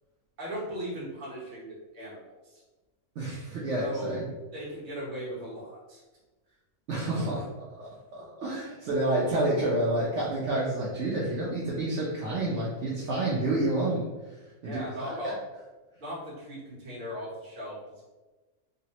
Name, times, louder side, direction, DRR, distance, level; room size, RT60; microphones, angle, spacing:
voice 1, 0.4-2.6 3.8-4.2 4.5-6.0 14.6-15.4 16.0-18.0, equal, 40° right, -6 dB, 1.0 m, -38 dB
voice 2, 3.2-4.3 6.9-15.4, right 1 dB, 65° right, -5 dB, 0.8 m, -29 dB
3.3 x 2.0 x 2.7 m, 1.2 s
omnidirectional pair, 1.4 m